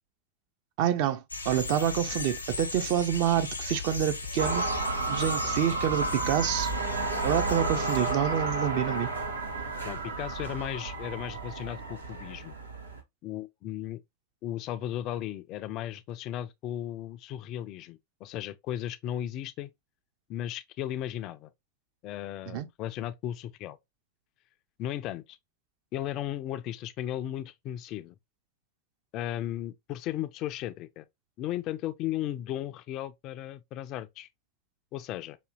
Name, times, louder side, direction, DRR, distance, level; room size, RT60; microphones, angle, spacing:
voice 1, 0.8-4.7 5.1-6.7 7.2-9.1 22.5-22.7, right 10 dB, 45° right, 0.5 m, -27 dB
sound 1, 1.3-8.1, left 4 dB, 80° left, 0.7 m, -37 dB
sound 2, 4.4-13.0, right 3 dB, 80° right, 0.8 m, -32 dB
voice 2, 9.8-12.5 13.2-14.0 14.4-19.7 20.3-21.5 22.0-23.8 24.8-25.4 25.9-28.1 29.1-31.0 31.4-34.3 34.9-35.4, left 12 dB, 40° left, 0.3 m, -35 dB
5.0 x 2.7 x 2.2 m
figure-of-eight pair, 90°, 0 cm